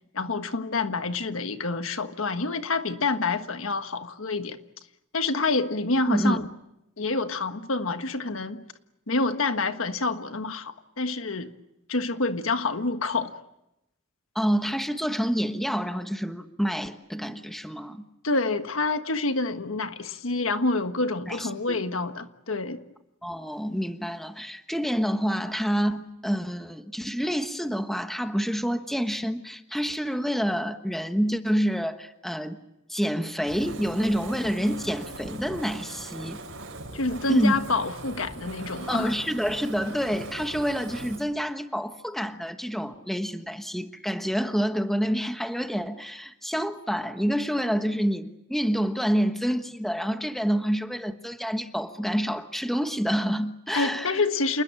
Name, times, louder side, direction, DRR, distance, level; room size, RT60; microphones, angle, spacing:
voice 1, 0.1-4.6 5.1-6.5 7.0-8.6 9.1-11.5 11.9-13.4 18.2-22.8 36.9-39.1 53.7-54.6, left 3 dB, 80° left, 1.4 m, -27 dB
voice 2, 6.1-6.4 14.3-18.1 21.3-21.8 23.2-32.6 32.9-36.4 37.3-37.5 38.9-54.2, equal, ahead, 1.2 m, -28 dB
Fire, 33.4-41.2, right 2 dB, 70° right, 5.1 m, -40 dB
28.5 x 20.5 x 8.9 m
head